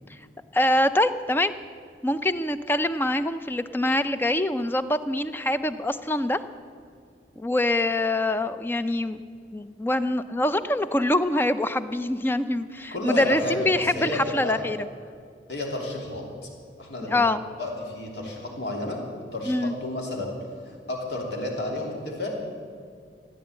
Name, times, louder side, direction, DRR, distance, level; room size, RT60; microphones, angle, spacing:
voice 1, 0.5-1.5 2.0-6.4 7.4-9.2 9.5-14.8 17.1-17.4 19.5-19.7, left 1 dB, 10° left, 11 dB, 0.4 m, -24 dB
voice 2, 12.9-14.6 15.5-16.2 16.8-17.2 17.6-20.3 20.7-22.3, left 2 dB, 70° left, -1 dB, 3.1 m, -31 dB
14.5 x 9.6 x 8.6 m, 2.2 s
head